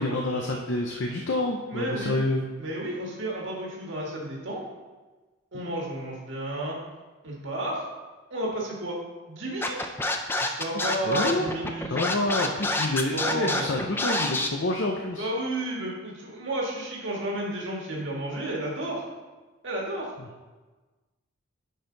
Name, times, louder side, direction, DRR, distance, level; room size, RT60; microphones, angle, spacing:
voice 1, 0.0-2.5 5.5-5.6 11.1-11.5 11.9-15.3, left 2 dB, 60° left, 1 dB, 0.6 m, -28 dB
voice 2, 1.7-2.2 2.6-4.6 5.5-6.8 7.2-7.8 8.3-9.0 9.3-9.9 10.4-11.9 13.1-13.7 15.2-19.0 19.6-20.1, right 1 dB, 60° right, -3 dB, 1.7 m, -32 dB
Scratching (performance technique), 9.6-14.5, left 2 dB, 10° left, 0.4 m, -27 dB
9.8 x 4.4 x 3.9 m, 1.3 s
head